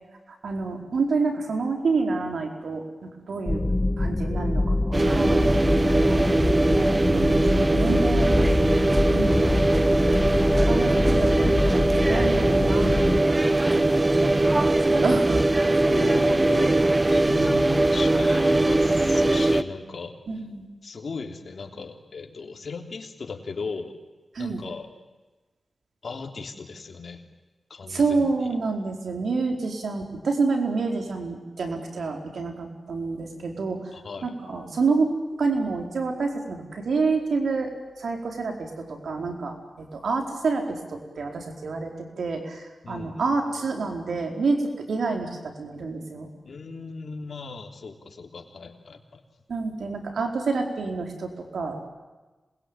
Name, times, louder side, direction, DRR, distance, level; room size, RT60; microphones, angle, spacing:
voice 1, 0.4-3.6 4.0-6.3 7.0-8.3 9.1-9.6 10.4-15.4 20.3-20.6 24.3-24.6 27.9-33.9 34.2-37.7 38.0-46.3 49.5-51.9, right 4 dB, 80° right, 3 dB, 4.6 m, -28 dB
sound 1, 3.5-13.2, left 2 dB, 25° left, 1.1 m, -25 dB
sound 2, 4.9-19.6, right 2 dB, 30° right, 1.2 m, -21 dB
voice 2, 6.1-6.5 15.9-20.1 20.8-23.9 24.4-24.9 26.0-27.2 27.7-28.3 33.9-34.3 42.8-43.5 46.4-49.2, left 4 dB, 65° left, 4 dB, 3.4 m, -36 dB
27.0 x 21.5 x 9.2 m, 1.2 s
cardioid pair, 65°, 0 cm